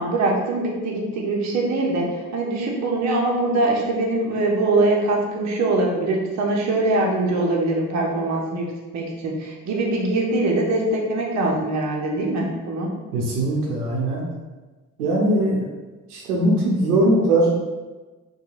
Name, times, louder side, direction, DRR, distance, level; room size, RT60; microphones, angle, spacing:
voice 1, 0.0-12.9, right 2 dB, 40° right, -1 dB, 0.6 m, -23 dB
voice 2, 13.1-14.2 15.0-15.6 16.1-17.6, right 1 dB, 80° right, -3 dB, 0.6 m, -20 dB
2.8 x 2.3 x 2.4 m, 1.2 s
figure-of-eight pair, 45°, 46 cm